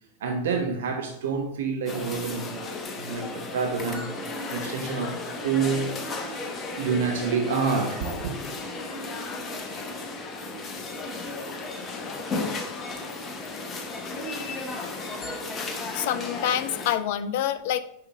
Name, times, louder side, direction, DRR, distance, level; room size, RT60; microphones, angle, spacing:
voice 1, 0.2-4.1 4.5-5.9 6.8-8.3, right 5 dB, 60° right, 3 dB, 0.9 m, -28 dB
sound 1, 1.9-17.0, left 3 dB, 20° left, 0.8 m, -34 dB
voice 2, 15.9-17.8, left 10 dB, 50° left, 12 dB, 0.4 m, -26 dB
6.2 x 5.1 x 3.6 m, 0.74 s
figure-of-eight pair, 90°, 0 cm